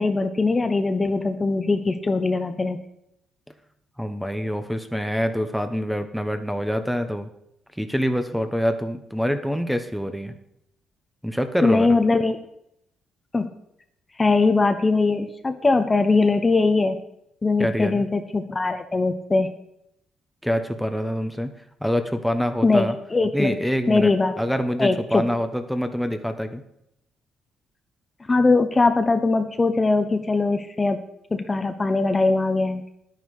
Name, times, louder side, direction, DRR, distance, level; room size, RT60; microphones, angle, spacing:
voice 1, 0.0-2.8 11.6-12.4 13.3-13.5 14.2-17.0 17.4-19.5 22.6-23.6 23.9-24.3 24.8-25.3 28.3-31.0 31.3-32.8, left 3 dB, 25° left, 8 dB, 0.9 m, -21 dB
voice 2, 4.0-7.3 7.8-10.3 11.2-12.0 17.6-18.0 20.4-21.5 21.8-22.9 23.3-24.1 24.4-26.6, equal, ahead, 8 dB, 1.0 m, -25 dB
9.9 x 9.4 x 4.9 m, 0.78 s
cardioid pair, 90°, 0 cm